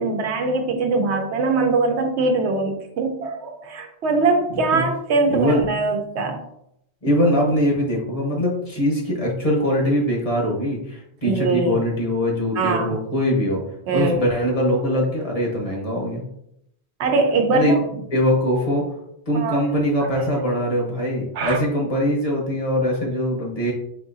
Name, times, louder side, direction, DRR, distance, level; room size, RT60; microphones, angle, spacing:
voice 1, 0.0-6.4 11.2-11.8 12.6-13.0 13.9-14.2 17.0-17.8 19.3-19.6 21.4-21.6, right 3 dB, 85° right, 4 dB, 1.0 m, -22 dB
voice 2, 4.5-4.8 5.3-5.7 7.0-13.6 13.9-16.2 17.5-18.9 19.3-23.7, equal, 35° left, -2 dB, 1.1 m, -22 dB
4.1 x 3.7 x 2.6 m, 0.77 s
omnidirectional pair, 1.1 m